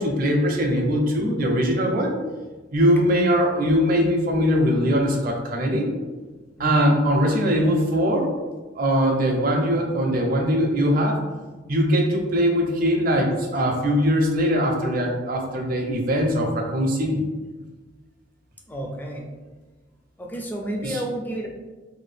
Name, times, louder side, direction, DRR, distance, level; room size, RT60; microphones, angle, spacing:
voice 1, 0.0-2.1 2.7-5.9 6.6-8.3 8.7-11.2 11.7-17.2 20.8-21.0, equal, 50° right, 1 dB, 0.5 m, -21 dB
voice 2, 6.6-7.0 18.7-19.2 20.2-21.5, right 1 dB, 10° left, 0 dB, 0.4 m, -31 dB
2.7 x 2.2 x 3.3 m, 1.3 s
head